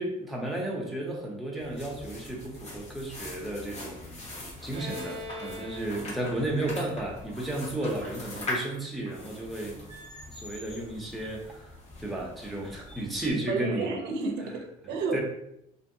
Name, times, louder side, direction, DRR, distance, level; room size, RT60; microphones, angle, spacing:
voice 1, 0.0-4.3 4.6-9.8 10.3-11.7 12.0-13.9 15.1-15.2, right 1 dB, ahead, -3 dB, 0.8 m, -33 dB
sound 1, 1.6-13.3, left 1 dB, 40° left, 1.1 m, -42 dB
Bowed string instrument, 4.7-8.3, equal, 35° right, 0.4 m, -43 dB
voice 2, 13.5-15.2, right 4 dB, 90° right, 4 dB, 0.5 m, -31 dB
2.7 x 2.7 x 2.7 m, 0.79 s
cardioid pair, 110°, 17 cm